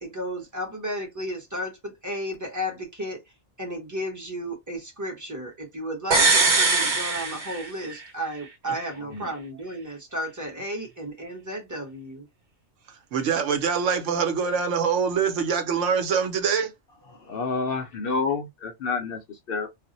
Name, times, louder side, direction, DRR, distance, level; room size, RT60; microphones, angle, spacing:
voice 1, 0.0-3.2 3.6-12.2, equal, 15° right, 0.9 m, -33 dB
sound 1, 6.1-8.0 8.3-8.4, right 3 dB, 40° right, 1.0 m, -21 dB
voice 2, 9.0-9.3 17.2-19.7, left 4 dB, 60° left, 0.7 m, -29 dB
voice 3, 13.1-16.7, right 6 dB, 75° right, 1.0 m, -24 dB
2.5 x 2.0 x 3.9 m
omnidirectional pair, 1.3 m